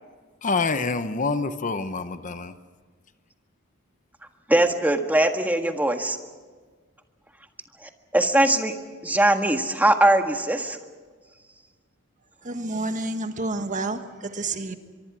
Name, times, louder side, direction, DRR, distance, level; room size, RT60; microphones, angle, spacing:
voice 1, 0.4-2.5, left 4 dB, 40° left, 0.9 m, -26 dB
voice 2, 4.5-6.2 7.8-8.7 9.0-10.8, right 1 dB, 10° right, 1.6 m, -21 dB
voice 3, 12.4-14.8, right 2 dB, 40° right, 1.5 m, -29 dB
24.0 x 23.5 x 6.1 m
head